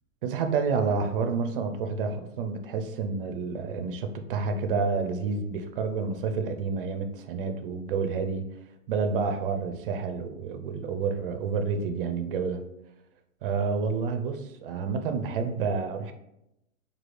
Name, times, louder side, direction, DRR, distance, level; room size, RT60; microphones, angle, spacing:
voice 1, 0.2-8.4 8.9-12.6 13.4-16.1, right 5 dB, 45° right, 7 dB, 0.5 m, -29 dB
4.7 x 2.4 x 3.2 m, 0.84 s
hypercardioid pair, 145°, 40 cm